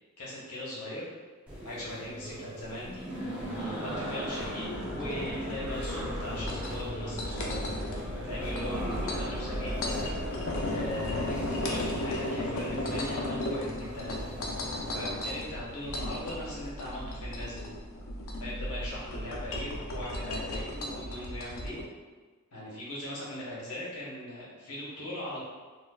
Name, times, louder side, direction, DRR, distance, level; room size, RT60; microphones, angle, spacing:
voice 1, 0.2-1.0 1.6-3.1 3.5-7.6 8.2-10.2 10.7-14.1 14.8-17.7 18.4-21.8 22.5-25.4, left 1 dB, 85° left, -6 dB, 1.0 m, -39 dB
sound 1, 1.5-15.4, equal, 5° right, 0.8 m, -39 dB
sound 2, 2.6-21.9, left 1 dB, 65° left, 0.5 m, -35 dB
4.3 x 2.2 x 2.3 m, 1.4 s
head